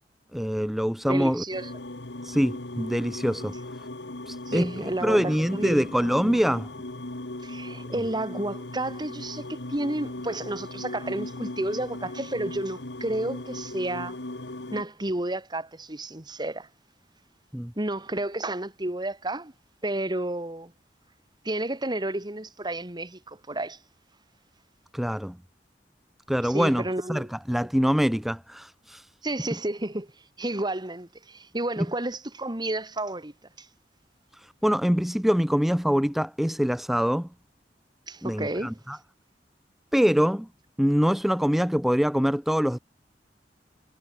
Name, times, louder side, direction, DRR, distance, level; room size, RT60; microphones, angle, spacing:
voice 1, 0.3-1.4 2.2-3.6 4.3-4.8 5.0-6.7 17.5-17.7 24.9-25.4 26.3-26.8 27.1-29.1 31.8-31.9 34.3-37.3 38.2-39.0 39.9-40.5 40.8-42.8, equal, ahead, 0.4 m, -24 dB
voice 2, 1.1-1.7 4.5-5.8 7.4-14.2 14.7-16.7 17.8-19.5 19.8-20.7 21.4-23.8 26.4-27.3 27.5-27.7 29.2-30.1 30.4-33.3 33.6-33.7 38.1-38.8, right 1 dB, 25° right, 2.4 m, -31 dB
Strange Chant, 1.5-14.8, left 2 dB, 80° left, 2.0 m, -38 dB
head